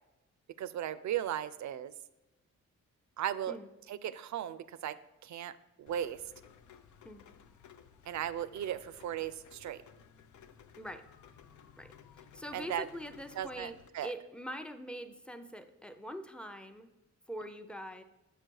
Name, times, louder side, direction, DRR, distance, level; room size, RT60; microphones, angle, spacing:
voice 1, 0.6-1.9 3.2-3.6 3.9-5.0 5.2-5.5 5.8-6.2 8.1-9.8 12.5-12.9 13.4-14.1, right 11 dB, 75° right, 15 dB, 0.5 m, -36 dB
Rain, 5.9-13.9, left 7 dB, 80° left, 0.6 m, -57 dB
voice 2, 11.8-16.9 17.3-18.0, equal, 5° left, 8 dB, 0.5 m, -44 dB
6.6 x 6.5 x 4.6 m, 0.99 s
cardioid pair, 105°, 29 cm